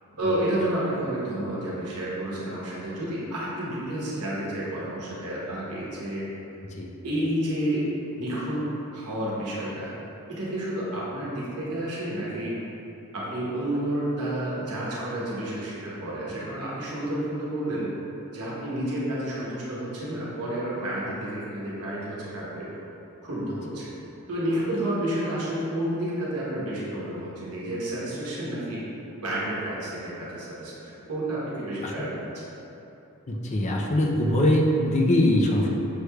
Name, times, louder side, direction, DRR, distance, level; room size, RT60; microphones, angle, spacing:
voice 1, 0.2-6.3 7.0-7.9 8.2-8.7 8.9-9.9 10.3-12.6 13.1-17.9 18.3-22.7 23.2-23.9 24.3-28.8 29.2-32.2, right 1 dB, 80° right, -7 dB, 1.0 m, -30 dB
voice 2, 33.3-35.7, left 1 dB, 30° left, 0 dB, 0.4 m, -22 dB
6.3 x 3.1 x 2.3 m, 2.9 s
head